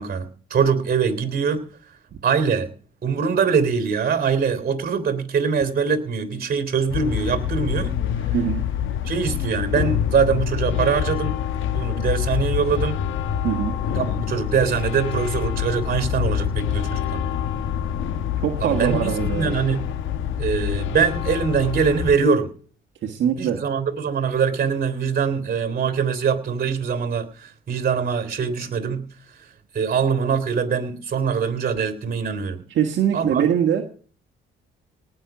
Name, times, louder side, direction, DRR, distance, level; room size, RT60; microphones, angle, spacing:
voice 1, 0.0-1.6 2.2-2.7 3.0-8.0 9.0-11.4 11.7-13.0 13.9-17.2 18.6-19.9 20.4-22.5 23.4-29.0 29.7-32.6 33.1-33.4, right 6 dB, 50° right, 9 dB, 3.5 m, -23 dB
sound 1, 6.9-22.2, left 9 dB, 80° left, 1.2 m, -26 dB
voice 2, 18.4-19.6 23.0-23.6 32.7-33.8, right 9 dB, 70° right, 2 dB, 1.8 m, -22 dB
18.5 x 6.3 x 6.2 m, 0.43 s
cardioid pair, 90°, 20 cm